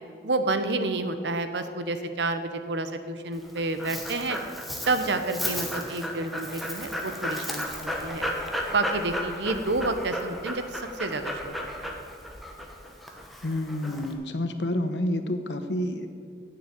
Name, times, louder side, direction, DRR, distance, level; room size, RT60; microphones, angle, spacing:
voice 1, 0.2-4.4 4.9-8.3 8.7-11.9, right 2 dB, 85° right, 9 dB, 0.9 m, -29 dB
Dog, 3.3-14.1, equal, ahead, 1.0 m, -34 dB
voice 2, 13.4-16.1, left 1 dB, 90° left, 8 dB, 1.0 m, -29 dB
9.5 x 7.1 x 8.9 m, 2.3 s
head